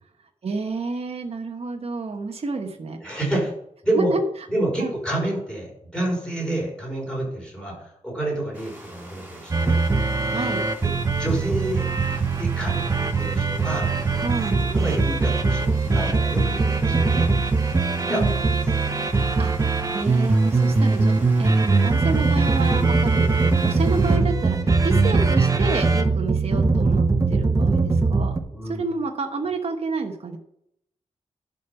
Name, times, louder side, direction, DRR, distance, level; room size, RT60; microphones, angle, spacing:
voice 1, 0.4-3.0 3.9-4.2 4.8-4.9 10.3-10.6 14.2-14.6 18.1-18.3 19.4-27.0 27.3-28.3 28.7-30.4, right 3 dB, 50° right, 3 dB, 1.1 m, -29 dB
voice 2, 3.0-3.5 3.8-4.1 4.5-9.8 10.8-11.9 12.3-12.8 13.1-14.2 14.6-17.3 18.0-18.9 22.8-22.9 28.5-28.8, right 1 dB, 5° left, -3 dB, 5.0 m, -29 dB
sound 1, 8.5-24.2, right 1 dB, 10° right, 4.0 m, -45 dB
sound 2, 9.5-28.4, right 3 dB, 25° right, 0.7 m, -21 dB
11.0 x 5.3 x 6.8 m, 0.74 s
wide cardioid pair, 145°, 13 cm